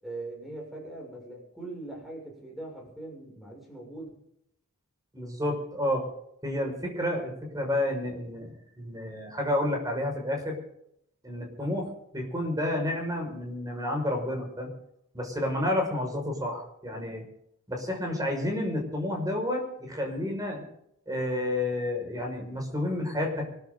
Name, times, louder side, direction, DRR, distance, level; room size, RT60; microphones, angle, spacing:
voice 1, 0.0-4.1, right 2 dB, ahead, -1 dB, 6.8 m, -41 dB
voice 2, 5.1-6.1 6.4-10.6 11.2-14.7 15.1-17.2 17.7-20.6 21.1-23.4, left 1 dB, 15° right, 2 dB, 5.8 m, -30 dB
24.5 x 13.5 x 4.0 m, 0.76 s
head